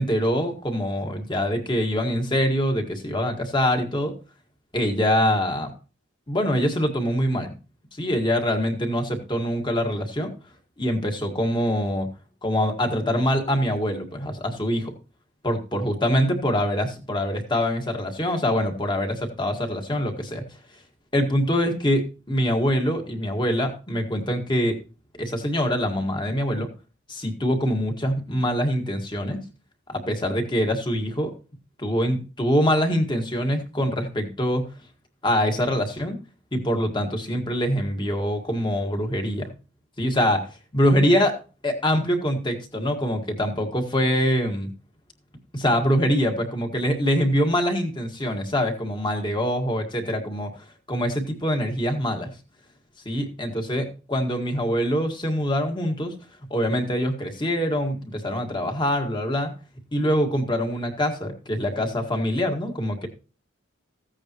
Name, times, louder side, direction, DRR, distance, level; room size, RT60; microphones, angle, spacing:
voice 1, 0.0-4.1 4.7-5.7 6.3-7.5 7.9-10.3 10.8-12.1 12.4-15.0 15.4-20.4 21.1-24.8 25.2-26.7 27.1-29.4 29.9-31.3 31.8-34.7 35.2-36.2 36.5-39.5 40.0-41.4 41.6-44.7 45.5-52.3 53.1-56.1 56.5-59.5 59.9-63.1, equal, 20° left, 4 dB, 1.8 m, -24 dB
15.5 x 8.8 x 3.1 m, 0.34 s
head